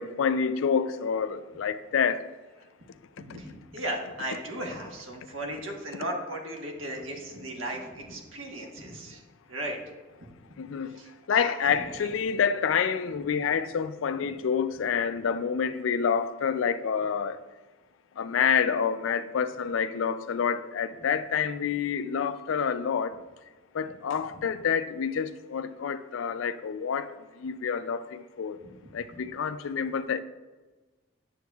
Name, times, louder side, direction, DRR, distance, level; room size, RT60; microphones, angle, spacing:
voice 1, 0.0-2.2 3.3-3.4 10.6-11.0 11.3-17.4 18.2-23.1 23.7-27.1 27.4-28.6 28.9-30.2, left 7 dB, 75° left, 0.4 m, -28 dB
voice 2, 3.2-9.2 9.5-9.8 10.9-12.1 13.1-13.4 24.3-24.4 28.6-29.2, right 1 dB, 80° right, 1.3 m, -37 dB
9.3 x 6.9 x 2.3 m
head